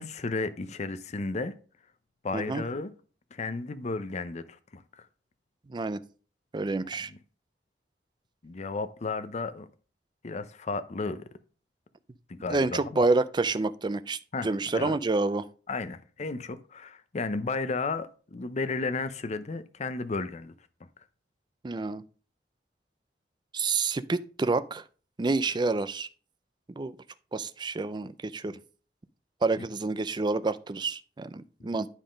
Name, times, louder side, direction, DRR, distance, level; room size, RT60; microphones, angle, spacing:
voice 1, 0.0-1.5 2.2-2.9 3.3-5.1 7.1-7.2 8.4-9.7 10.2-11.2 12.3-13.0 14.3-15.0 15.7-20.5 31.6-31.7, left 3 dB, 40° left, 0.5 m, -33 dB
voice 2, 2.3-2.6 5.7-6.0 6.5-7.1 12.5-15.5 21.6-22.0 23.5-24.8 25.2-26.1 26.8-26.9 27.3-28.6 29.4-31.9, right 3 dB, 25° right, 0.4 m, -28 dB
10.0 x 3.7 x 5.0 m
head